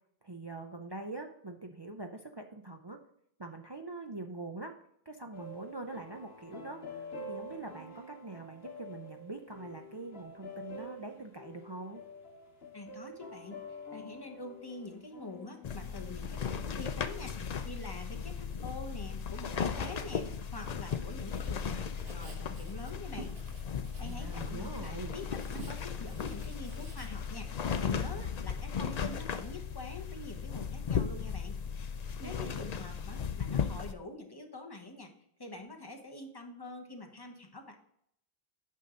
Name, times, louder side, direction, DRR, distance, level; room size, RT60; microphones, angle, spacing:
voice 1, 0.2-3.0 3.4-4.7 5.1-12.0 24.0-25.2 32.2-32.5, right 2 dB, 35° right, 4 dB, 0.5 m, -43 dB
sound 1, 5.3-16.4, left 2 dB, 70° left, 1.4 m, -47 dB
voice 2, 12.7-13.6 13.9-23.3 24.0-31.6 32.2-35.1 35.4-37.8, left 2 dB, 25° left, 3 dB, 1.0 m, -45 dB
sound 2, 15.6-33.9, left 6 dB, 50° left, 0.6 m, -36 dB
Writing, 21.3-27.7, right 3 dB, 75° right, 1.3 m, -52 dB
8.9 x 5.7 x 3.7 m, 0.71 s
omnidirectional pair, 1.1 m